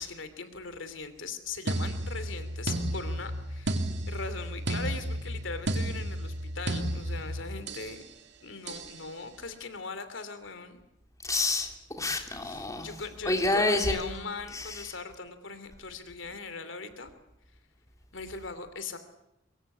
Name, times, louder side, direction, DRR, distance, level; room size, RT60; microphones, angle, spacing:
voice 1, 0.0-8.0 8.4-10.8 12.4-17.1 18.1-19.0, left 4 dB, 80° left, 11 dB, 2.9 m, -40 dB
sound 1, 1.7-8.0 8.7-9.0, right 1 dB, 65° right, 2.5 m, -33 dB
voice 2, 11.2-12.9 13.2-14.2 14.5-14.9, left 2 dB, 20° left, 4 dB, 3.3 m, -28 dB
24.0 x 23.0 x 8.4 m, 0.85 s
head